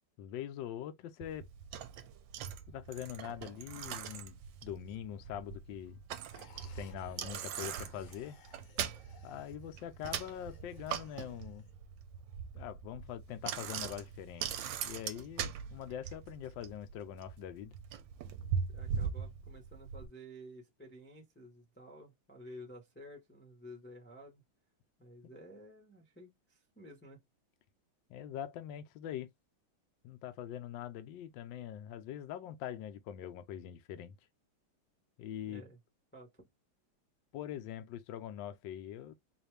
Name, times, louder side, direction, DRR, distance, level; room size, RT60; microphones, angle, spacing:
voice 1, 0.2-1.5 2.7-6.0 6.7-8.4 9.2-11.7 12.5-14.5 14.8-17.8 28.1-29.3 30.0-34.2 35.2-35.6 37.3-39.1, left 10 dB, 70° left, 1.3 m, -43 dB
Bicycle, 1.2-20.1, right 8 dB, 70° right, 1.2 m, -41 dB
sound 1, 6.3-11.7, left 3 dB, 50° left, 1.0 m, -60 dB
voice 2, 18.7-24.4 25.0-27.2 35.4-35.8 36.1-36.5, equal, 10° left, 0.7 m, -52 dB
4.1 x 2.6 x 3.3 m
omnidirectional pair, 2.3 m